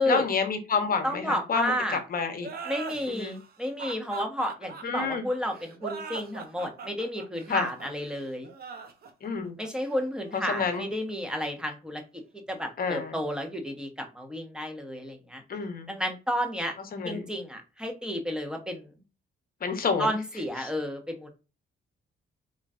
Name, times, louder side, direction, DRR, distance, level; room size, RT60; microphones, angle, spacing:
voice 1, 0.1-2.5 3.1-3.3 4.8-5.2 7.5-7.7 9.2-9.5 10.5-10.8 12.8-13.1 15.5-15.9 16.9-17.2 19.6-20.1 20.6-20.7, left 5 dB, 45° left, 7 dB, 1.0 m, -29 dB
voice 2, 1.0-2.0 2.7-8.5 9.6-12.0 12.5-15.4 15.9-16.7 17.0-18.9 20.0-21.3, equal, 5° right, 4 dB, 1.1 m, -31 dB
sound 1, 2.4-11.7, right 5 dB, 50° right, 0.7 m, -42 dB
3.9 x 3.1 x 2.4 m, 0.31 s
cardioid pair, 90°, 20 cm